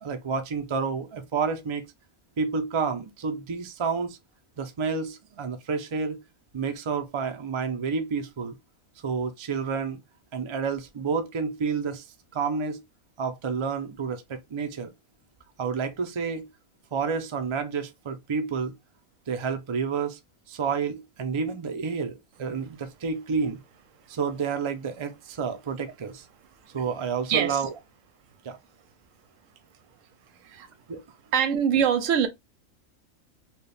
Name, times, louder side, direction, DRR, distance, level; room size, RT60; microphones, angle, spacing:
voice 1, 0.0-1.8 2.4-4.2 4.6-6.2 6.5-8.6 9.0-10.0 10.3-12.1 12.3-12.8 13.2-14.9 15.6-16.5 16.9-18.7 19.3-20.2 20.5-23.6 24.1-26.3 26.7-27.7 28.4-28.6 30.9-31.0, right 5 dB, 45° right, 0.3 m, -29 dB
voice 2, 27.3-27.6 30.4-30.7 31.3-32.3, right 8 dB, 75° right, 1.0 m, -24 dB
4.2 x 2.4 x 3.3 m
omnidirectional pair, 1.4 m